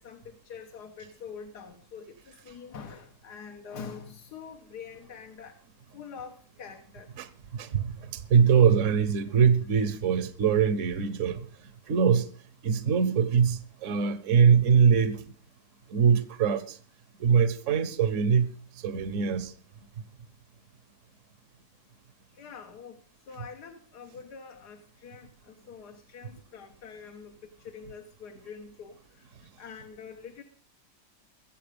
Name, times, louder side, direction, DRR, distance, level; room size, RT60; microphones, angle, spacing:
voice 1, 0.0-5.6 5.9-7.1 22.3-30.4, left 6 dB, 75° left, 1.8 m, -45 dB
voice 2, 7.5-11.5 11.9-12.3 12.6-15.2 15.9-16.8 17.2-18.5 18.7-19.5, right 7 dB, 55° right, 1.1 m, -23 dB
22.0 x 7.6 x 5.1 m
omnidirectional pair, 1.8 m